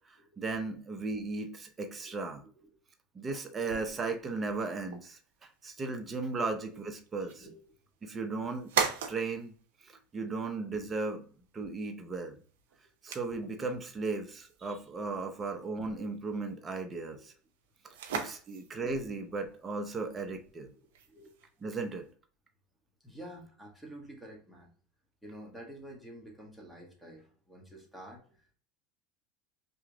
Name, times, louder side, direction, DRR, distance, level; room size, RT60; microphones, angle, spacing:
voice 1, 0.1-2.4 3.1-5.2 5.6-7.5 8.0-8.7 9.1-9.5 9.8-11.2 11.5-12.4 13.0-17.3 18.1-20.7 21.6-22.1, right 3 dB, 25° right, 5 dB, 0.7 m, -36 dB
voice 2, 2.1-2.8 3.5-3.6 3.9-4.0 6.7-6.8 7.4-7.8 17.1-17.2 21.0-21.3 23.0-24.7 25.2-28.5, right 1 dB, ahead, -2 dB, 1.1 m, -50 dB
sound 1, 3.7-22.1, right 7 dB, 85° right, 0.5 m, -42 dB
2.9 x 2.4 x 3.7 m, 0.42 s
supercardioid pair, 100°, 0 cm